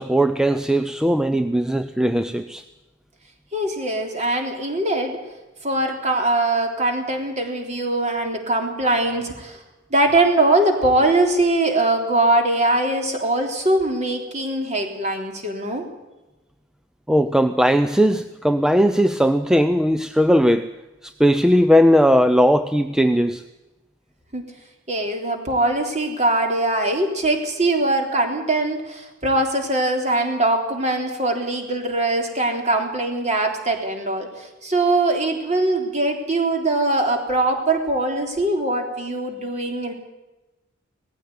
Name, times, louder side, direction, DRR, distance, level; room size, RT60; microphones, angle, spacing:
voice 1, 0.0-2.6 17.1-20.7 21.0-23.4, equal, 5° right, 9 dB, 0.6 m, -18 dB
voice 2, 3.5-5.2 5.6-9.6 9.9-15.8 24.3-24.4 24.9-39.9, right 2 dB, 35° right, 4 dB, 3.6 m, -22 dB
19.0 x 15.0 x 9.4 m, 1.0 s
head